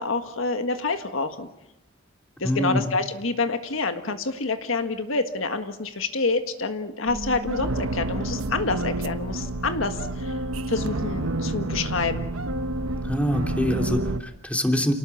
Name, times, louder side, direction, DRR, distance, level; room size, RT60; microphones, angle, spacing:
voice 1, 0.0-1.5 2.4-10.4 10.7-12.3, left 3 dB, 70° left, 7 dB, 1.7 m, -27 dB
voice 2, 2.4-2.8 13.0-14.9, equal, 5° left, 3 dB, 3.0 m, -25 dB
sound 1, 7.1-14.2, right 1 dB, 80° right, 1.1 m, -29 dB
29.0 x 19.5 x 7.2 m, 0.90 s
head